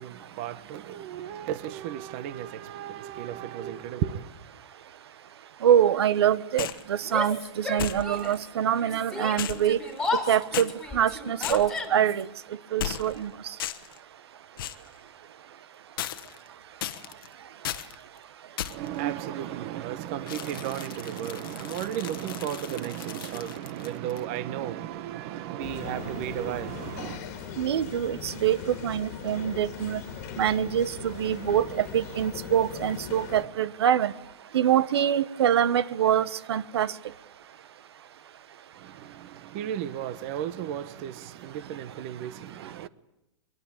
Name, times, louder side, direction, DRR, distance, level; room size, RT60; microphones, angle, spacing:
voice 1, 0.0-4.3 18.7-27.2 38.8-42.9, right 11 dB, 30° right, 0.9 m, -34 dB
voice 2, 5.6-9.8 10.3-12.3 12.7-13.3 27.6-30.0 30.4-34.1 34.5-36.9, right 10 dB, 65° right, 1.1 m, -25 dB
sound 1, 6.6-6.9 7.8-8.4 9.4-10.2 10.5-10.7 11.4-11.9 12.8-13.2 13.6-14.0 14.6-14.9 16.0-16.5 16.8-17.3 17.6-18.0 18.6-19.0 20.3-24.2, left 12 dB, 50° left, 1.3 m, -36 dB
Yell, 7.0-8.5 8.8-12.2, left 3 dB, 5° left, 2.8 m, -34 dB
sound 2, 25.6-33.4, left 8 dB, 35° left, 2.0 m, -40 dB
23.0 x 23.0 x 8.8 m
supercardioid pair, 175°, 14 cm